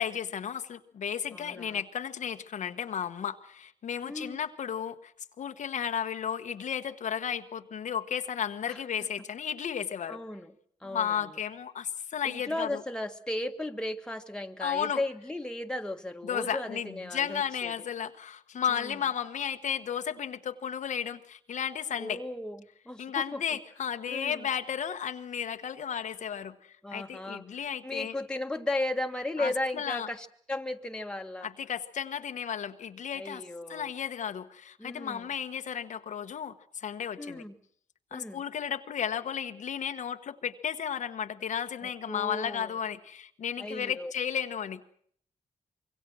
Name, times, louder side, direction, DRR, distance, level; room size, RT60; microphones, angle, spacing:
voice 1, 0.0-5.1 5.4-10.2 10.8-12.8 14.6-15.0 16.2-22.2 23.0-28.2 29.4-30.1 31.4-33.4 33.7-37.4 38.1-44.8, left 8 dB, 70° left, 7 dB, 1.2 m, -34 dB
voice 2, 1.3-1.8 4.0-4.4 8.7-8.8 10.1-10.5 10.8-11.3 12.2-17.7 18.7-19.0 22.0-23.1 23.3-23.6 24.1-24.5 26.8-27.4 27.8-31.5 33.1-33.9 34.8-35.3 37.2-37.5 38.1-38.4 42.1-42.7 43.6-44.1, left 1 dB, 5° left, 4 dB, 1.7 m, -35 dB
25.5 x 23.0 x 6.2 m, 0.64 s
cardioid pair, 90°, 13 cm